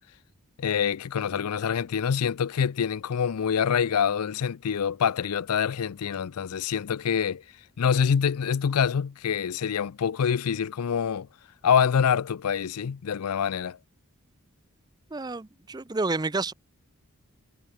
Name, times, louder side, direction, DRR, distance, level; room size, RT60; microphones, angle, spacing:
voice 1, 0.6-7.4 7.8-11.3 11.6-13.8, left 7 dB, 90° left, 0.5 m, -26 dB
voice 2, 15.1-16.5, right 3 dB, 20° right, 0.5 m, -29 dB
head